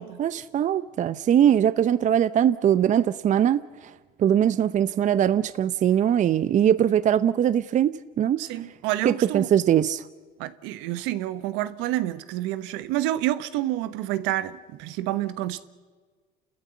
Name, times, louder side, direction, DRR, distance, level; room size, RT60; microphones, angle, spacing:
voice 1, 0.0-3.6 4.2-8.4 9.0-10.0, right 10 dB, 40° right, 0.7 m, -21 dB
voice 2, 8.4-9.5 10.4-15.6, right 14 dB, 80° right, 1.3 m, -28 dB
30.0 x 14.0 x 8.3 m
supercardioid pair, 100°, 19 cm